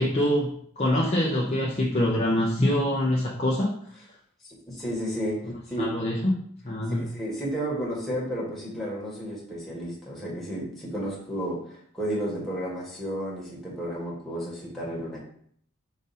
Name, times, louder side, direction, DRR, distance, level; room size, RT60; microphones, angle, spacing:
voice 1, 0.0-3.7 5.8-6.3 6.6-7.1, left 1 dB, 30° left, -5 dB, 0.6 m, -24 dB
voice 2, 4.4-5.4 5.7-5.9 6.9-15.2, equal, ahead, -6 dB, 1.3 m, -32 dB
5.0 x 2.6 x 4.0 m, 0.63 s
head